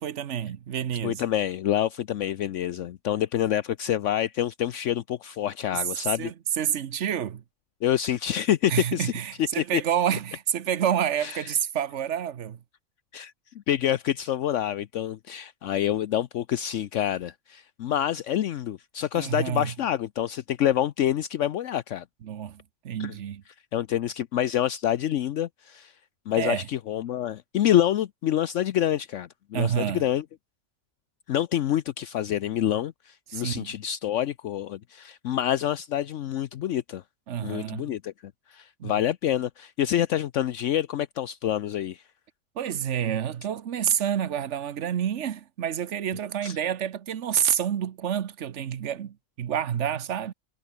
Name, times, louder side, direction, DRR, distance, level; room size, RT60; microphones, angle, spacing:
voice 1, 0.0-1.2 5.7-5.8 6.2-7.4 8.7-12.6 19.1-19.7 22.2-23.4 26.4-26.7 29.5-30.0 33.3-33.7 37.3-37.9 38.8-38.9 42.5-50.3, right 9 dB, 65° right, 1.2 m, -28 dB
voice 2, 1.0-6.3 7.8-9.1 9.5-9.8 11.2-11.5 13.1-13.3 13.7-22.0 23.0-23.1 23.7-25.9 26.3-30.2 31.3-37.0 37.4-42.0 46.4-46.6, left 11 dB, 70° left, 1.0 m, -27 dB
omnidirectional pair, 1.3 m